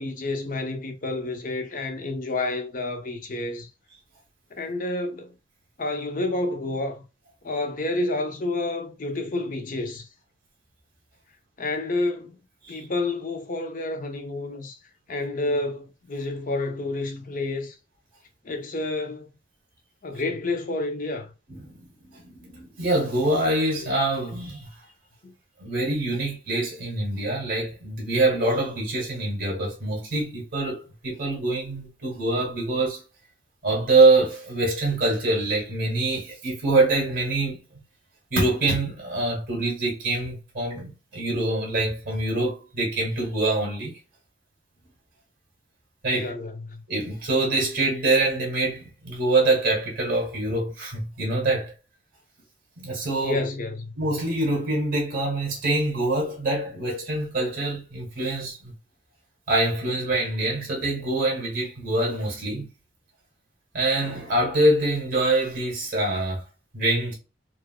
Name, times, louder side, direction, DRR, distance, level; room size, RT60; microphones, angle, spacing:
voice 1, 0.0-3.7 4.6-5.3 5.8-7.0 7.4-10.1 11.6-12.4 12.7-14.8 15.1-17.8 18.4-19.3 20.0-21.3 23.8-23.9 25.2-25.3 46.1-46.8 53.2-53.9, left 2 dB, 45° left, 0.7 m, -29 dB
voice 2, 21.5-21.9 22.1-24.7 25.6-33.0 33.6-37.6 38.3-44.0 46.0-46.4 46.9-51.7 52.8-53.4 54.0-58.7 59.5-62.7 63.7-66.4 66.7-67.1, right 2 dB, 50° right, 1.7 m, -25 dB
4.8 x 2.1 x 2.2 m
head